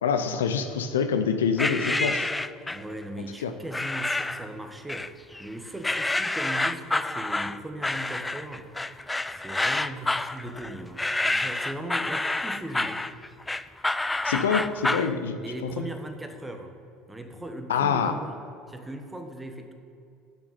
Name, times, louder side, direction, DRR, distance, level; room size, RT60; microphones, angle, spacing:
voice 1, 0.0-2.3 3.4-3.5 14.2-15.7 17.7-18.2, left 6 dB, 85° left, 9 dB, 0.5 m, -26 dB
sound 1, 1.6-2.9 3.7-4.5 4.9-5.5 5.8-15.1, left 2 dB, 10° left, 0.3 m, -28 dB
voice 2, 2.7-8.7 9.3-13.0 15.4-16.7 17.1-18.4 18.7-19.7, right 1 dB, 10° right, 5 dB, 1.2 m, -38 dB
7.3 x 6.2 x 6.9 m, 2.5 s
hypercardioid pair, 75°, 0 cm